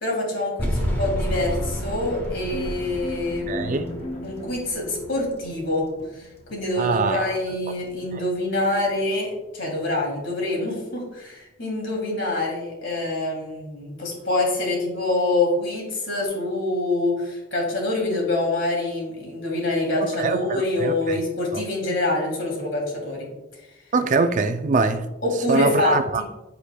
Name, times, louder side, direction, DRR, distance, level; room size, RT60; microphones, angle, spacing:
voice 1, 0.0-3.9 4.2-5.9 6.1-23.3 25.2-26.2, left 2 dB, 55° left, 2.6 m, -26 dB
sound 1, 0.6-5.8, equal, 10° left, 1.3 m, -30 dB
sound 2, 0.9-9.8, left 1 dB, 30° left, 0.5 m, -39 dB
voice 2, 3.5-3.9 6.8-7.3 8.1-8.2 20.0-21.2 21.5-21.6 23.9-25.1 25.5-26.2, right 3 dB, 35° right, 0.3 m, -23 dB
14.0 x 4.9 x 2.2 m
head